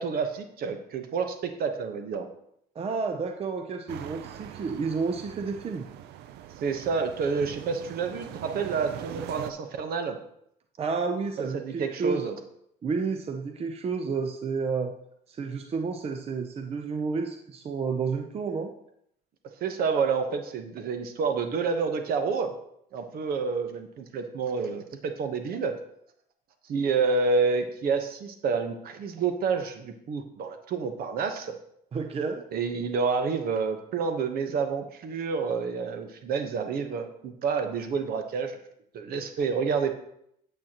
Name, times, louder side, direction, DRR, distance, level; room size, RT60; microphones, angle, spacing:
voice 1, 0.0-2.3 6.6-10.2 11.5-12.4 19.6-22.5 22.9-25.8 26.7-31.6 32.5-38.6 38.9-39.9, right 5 dB, 60° right, 7 dB, 1.1 m, -29 dB
voice 2, 2.7-5.9 10.8-12.3 12.8-15.0 15.3-18.7 31.9-32.4, right 5 dB, 35° right, 5 dB, 0.7 m, -30 dB
sound 1, 3.9-9.5, right 11 dB, 80° right, 0.5 m, -42 dB
8.9 x 8.0 x 3.0 m, 0.73 s
cardioid pair, 110°, 17 cm